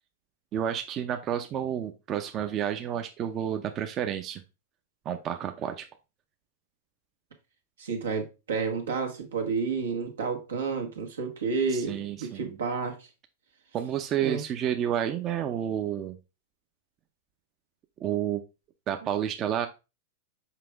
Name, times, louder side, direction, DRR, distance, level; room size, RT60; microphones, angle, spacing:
voice 1, 0.5-4.4 5.0-5.9 11.7-12.6 13.7-16.2 18.0-18.4 18.9-19.7, right 10 dB, 35° right, 0.6 m, -30 dB
voice 2, 7.8-13.0 14.2-14.4, right 5 dB, 85° right, 1.6 m, -30 dB
5.8 x 4.8 x 3.4 m
hypercardioid pair, 110°, 0 cm